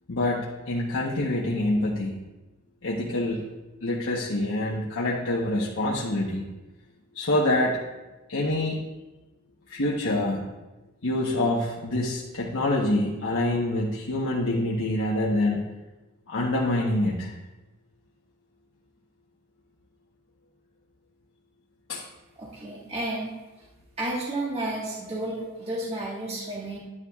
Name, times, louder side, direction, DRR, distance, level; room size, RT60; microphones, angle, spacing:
voice 1, 0.1-2.1 2.8-3.4 3.8-6.4 7.1-7.8 8.3-8.8 9.7-10.4 11.0-15.6 16.3-17.3 21.9-22.0, left 1 dB, 65° left, -4 dB, 1.1 m, -26 dB
voice 2, 22.4-23.3 24.0-26.8, right 1 dB, 30° right, -5 dB, 1.6 m, -32 dB
11.0 x 9.8 x 2.4 m, 1.1 s
head